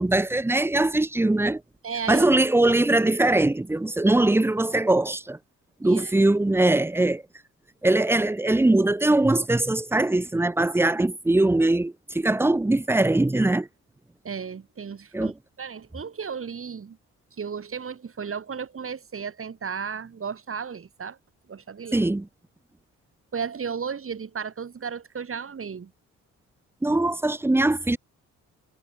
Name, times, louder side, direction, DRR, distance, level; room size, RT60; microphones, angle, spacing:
voice 1, 0.0-1.6 2.1-5.4 5.8-7.2 7.8-13.7 15.1-15.3 21.9-22.3 26.8-28.0, right 2 dB, 10° right, 0.6 m, -21 dB
voice 2, 1.8-2.3 5.8-6.1 14.2-17.0 17.4-21.2 21.5-22.0 23.3-25.9, right 6 dB, 45° right, 6.1 m, -34 dB
cardioid pair, 85°, 31 cm